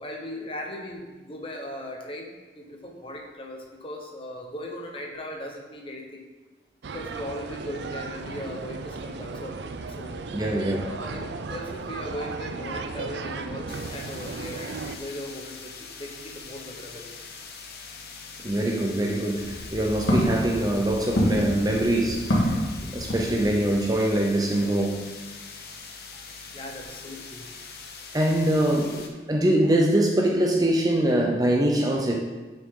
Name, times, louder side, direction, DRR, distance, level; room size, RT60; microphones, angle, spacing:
voice 1, 0.0-6.2 6.9-9.6 10.0-10.2 10.8-15.7 16.0-17.1 26.5-27.4, left 1 dB, 30° left, 1 dB, 1.1 m, -38 dB
sound 1, 6.8-15.0, right 4 dB, 75° right, 0.5 m, -35 dB
voice 2, 10.3-10.9 18.4-22.5 22.9-25.0 28.1-32.2, right 1 dB, 20° right, 0 dB, 0.7 m, -23 dB
sound 2, 13.7-29.1, left 4 dB, 60° left, 1.0 m, -42 dB
Walk footsteps, 19.2-23.8, equal, 80° left, 1.9 m, -27 dB
9.3 x 6.2 x 3.8 m, 1.2 s
head